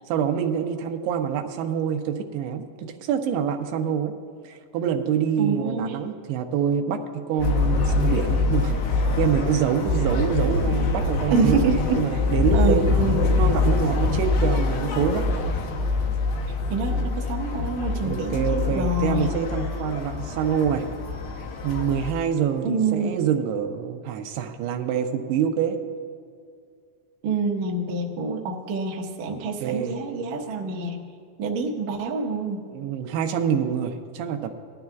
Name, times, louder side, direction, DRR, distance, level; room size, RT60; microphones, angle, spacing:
voice 1, 0.1-4.1 4.4-7.0 7.3-11.6 12.0-15.4 18.0-20.8 21.6-25.8 29.3-30.0 32.7-34.5, right 8 dB, 85° right, 5 dB, 2.8 m, -26 dB
voice 2, 5.4-5.9 11.3-12.1 12.5-13.3 16.7-19.4 22.6-23.2 27.2-31.1 31.4-32.7, right 3 dB, 70° right, 1 dB, 1.8 m, -26 dB
sound 1, 7.4-22.1, left 3 dB, 75° left, 2.6 m, -24 dB
19.5 x 13.0 x 2.4 m, 2.2 s
omnidirectional pair, 4.6 m